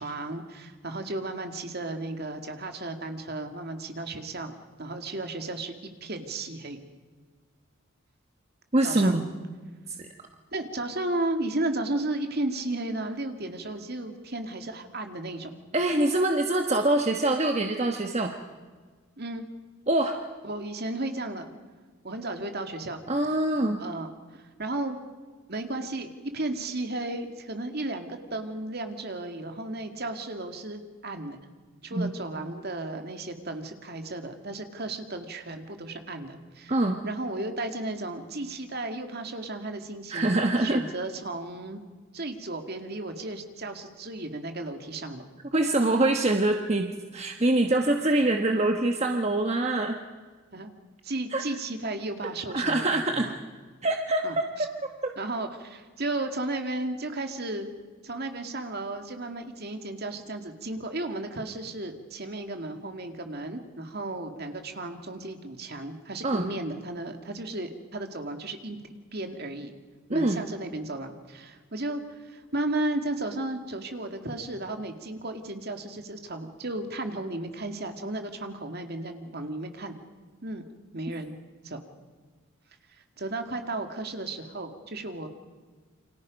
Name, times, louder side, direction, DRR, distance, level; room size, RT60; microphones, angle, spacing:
voice 1, 0.0-5.7 6.0-6.8 8.8-9.2 10.5-15.5 19.2-19.4 20.4-21.5 22.0-23.0 23.8-25.0 25.5-31.4 31.8-36.7 37.0-41.8 42.1-45.3 50.5-50.7 51.0-53.4 54.2-54.7 55.2-57.7 58.0-68.8 69.1-69.7 70.1-80.0 80.4-80.7 80.9-81.4 81.6-81.8 83.2-85.3, right 2 dB, 50° right, 6 dB, 2.3 m, -34 dB
voice 2, 8.7-9.2 9.9-10.1 15.7-18.3 19.9-20.2 23.1-23.8 31.9-32.1 36.7-37.0 40.1-40.8 45.5-50.0 51.3-51.4 52.5-53.3 53.8-54.4 55.0-55.1 66.2-66.5 70.1-70.4, right 2 dB, 30° right, 4 dB, 1.2 m, -24 dB
28.5 x 25.5 x 5.3 m, 1.5 s
head